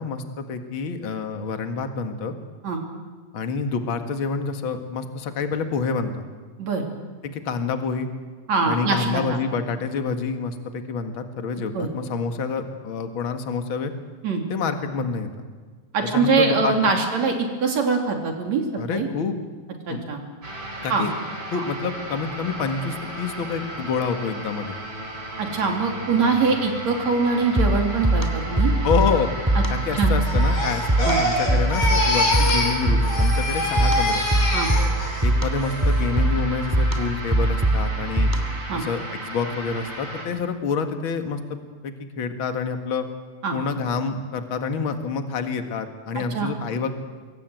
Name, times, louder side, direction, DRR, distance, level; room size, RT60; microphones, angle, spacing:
voice 1, 0.0-2.3 3.3-6.2 7.2-8.1 8.6-13.9 14.5-15.3 16.1-16.7 18.8-19.4 19.9-20.0 20.8-21.1 21.5-24.8 28.8-29.4 29.7-34.2 35.2-38.3 38.7-43.1 43.5-46.9, left 5 dB, 45° left, 6 dB, 2.4 m, -27 dB
voice 2, 8.5-9.4 11.7-11.9 14.2-14.4 15.9-18.6 18.9-19.1 19.9-20.2 20.9-21.1 21.5-21.6 25.4-28.7 29.6-29.7 29.9-30.1 31.0-31.2 34.5-34.7 38.7-38.8 43.4-43.6 46.2-46.5, right 4 dB, 65° right, 3 dB, 4.2 m, -23 dB
sound 1, 20.4-40.2, right 1 dB, 45° right, 6.2 m, -35 dB
sound 2, 27.6-38.7, right 1 dB, 5° right, 2.3 m, -22 dB
Crying sobbing, 30.2-32.8 33.0-35.2 35.6-36.0, left 1 dB, 90° left, 6.4 m, -24 dB
26.0 x 22.5 x 9.2 m, 1.5 s
omnidirectional pair, 3.3 m